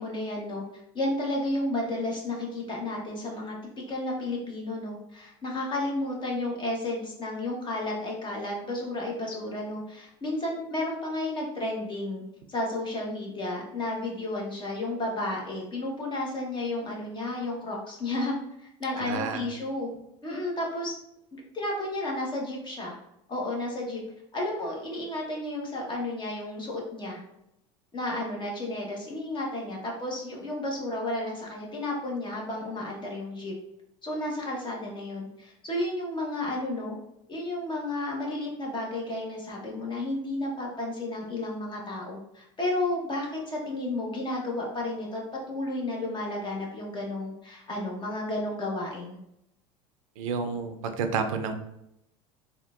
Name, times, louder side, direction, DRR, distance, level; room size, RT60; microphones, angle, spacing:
voice 1, 0.0-3.5 3.9-12.2 12.5-18.3 18.8-19.9 20.2-20.9 21.3-23.0 23.3-24.0 24.3-27.2 27.9-33.5 34.0-36.9 37.3-45.2 45.5-49.2, left 1 dB, 30° left, -1 dB, 1.1 m, -32 dB
voice 2, 19.0-19.4 50.2-51.5, right 5 dB, 85° right, 7 dB, 0.5 m, -30 dB
3.6 x 2.4 x 2.4 m, 0.81 s
supercardioid pair, 95°, 17 cm